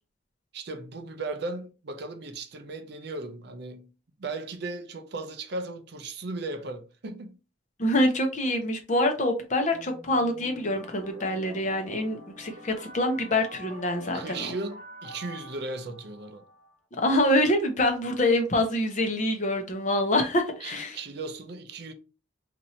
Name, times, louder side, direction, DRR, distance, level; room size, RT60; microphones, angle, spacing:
voice 1, 0.5-3.9 4.2-7.4 14.1-16.4 20.6-21.9, right 3 dB, 55° right, 0.5 m, -36 dB
voice 2, 7.8-14.5 17.0-21.0, left 1 dB, 35° left, 0.7 m, -25 dB
sound 1, 9.7-16.7, left 1 dB, 15° left, 1.0 m, -46 dB
2.8 x 2.6 x 4.2 m
head